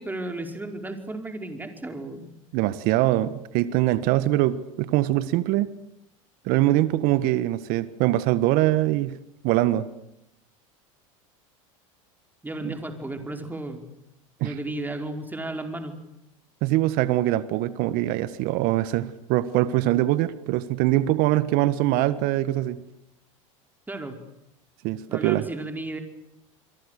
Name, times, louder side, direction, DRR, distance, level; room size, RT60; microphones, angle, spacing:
voice 1, 0.0-2.3 12.4-13.9 14.4-15.9 23.9-24.2 25.1-26.0, right 2 dB, 10° right, 5 dB, 5.0 m, -34 dB
voice 2, 2.5-5.7 6.4-9.2 9.4-9.9 12.6-12.7 14.4-14.5 16.6-22.8 24.8-25.5, right 15 dB, 60° right, 14 dB, 1.5 m, -23 dB
30.0 x 23.0 x 6.7 m, 0.85 s
hypercardioid pair, 95°, 17 cm